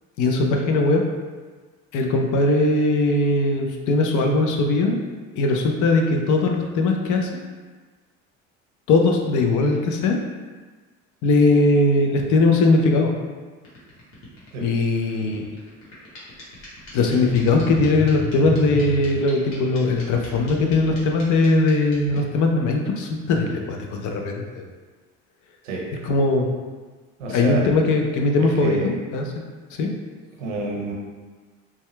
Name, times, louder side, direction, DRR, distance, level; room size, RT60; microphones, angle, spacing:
voice 1, 0.2-1.0 1.9-5.0 5.4-7.3 8.9-10.2 11.2-13.1 14.6-15.4 16.9-24.6 26.0-26.5 27.3-29.2 29.7-29.9, left 2 dB, 55° left, 2 dB, 0.6 m, -20 dB
sound 1, 13.6-22.2, left 4 dB, 75° left, 1.2 m, -34 dB
voice 2, 27.2-27.6 28.6-28.9 30.4-30.9, right 3 dB, 90° right, -2 dB, 0.7 m, -28 dB
2.7 x 2.3 x 3.1 m, 1.4 s
hypercardioid pair, 75°, 36 cm